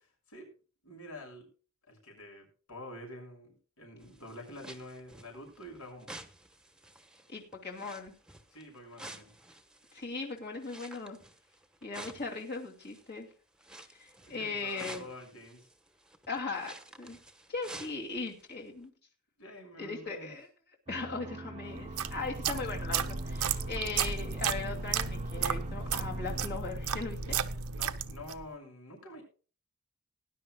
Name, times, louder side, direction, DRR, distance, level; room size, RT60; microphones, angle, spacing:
voice 1, 0.8-1.5 1.9-6.1 8.5-9.3 14.2-15.7 19.4-20.3 27.7-29.2, left 1 dB, 70° left, 2 dB, 6.5 m, -47 dB
sound 1, 4.0-13.2 13.5-18.5 18.8-18.9, right 1 dB, 5° right, 1.2 m, -51 dB
voice 2, 7.3-8.1 9.9-11.2 11.8-13.3 13.9-15.0 16.3-17.2 17.5-18.9 19.8-20.5 20.9-27.4, left 4 dB, 50° left, 0 dB, 2.6 m, -38 dB
sound 2, 20.9-26.6, right 2 dB, 25° right, 0.8 m, -46 dB
sound 3, 21.8-28.5, right 6 dB, 75° right, 0.9 m, -34 dB
19.5 x 11.0 x 2.3 m, 0.37 s
head